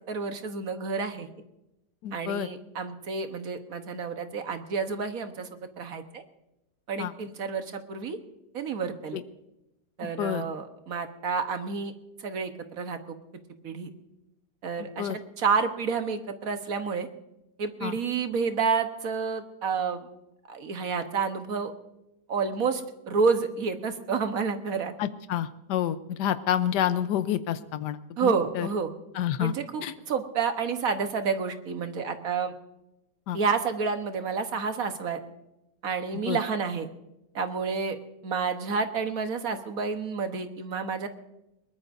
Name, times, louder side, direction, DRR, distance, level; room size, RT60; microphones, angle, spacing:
voice 1, 0.1-1.3 2.1-6.2 6.9-8.2 8.5-9.2 10.0-11.9 12.2-13.2 13.6-13.9 14.6-17.1 17.6-20.1 20.5-21.7 22.3-24.9 28.2-28.9 29.4-32.5 33.3-35.2 35.8-36.9 37.3-38.0 38.2-41.1, right 5 dB, 55° right, 7 dB, 1.5 m, -29 dB
voice 2, 2.0-2.5 7.0-7.1 9.1-9.2 10.0-10.4 14.8-15.2 17.8-17.9 25.0-28.7 29.1-29.5 29.8-29.9 33.3-33.4 36.1-36.4, left 10 dB, 70° left, 12 dB, 1.3 m, -29 dB
22.0 x 19.5 x 2.6 m, 0.89 s
omnidirectional pair, 2.0 m